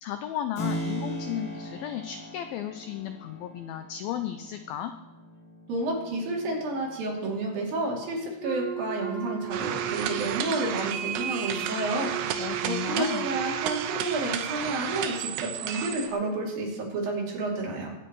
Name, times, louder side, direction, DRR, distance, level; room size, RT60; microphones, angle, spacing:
voice 1, 0.0-4.9 12.4-13.3, left 11 dB, 90° left, 9 dB, 2.0 m, -34 dB
Keyboard (musical), 0.6-9.1, equal, 55° left, 5.1 m, -40 dB
voice 2, 5.7-12.4 12.7-17.9, right 2 dB, 55° right, -2 dB, 4.5 m, -30 dB
Wind instrument woodwind instrument, 8.4-14.2, right 9 dB, 15° right, 2.0 m, -36 dB
sound 1, 9.5-16.1, right 9 dB, 80° right, 2.9 m, -32 dB
21.0 x 9.0 x 4.7 m, 1.0 s
omnidirectional pair, 5.0 m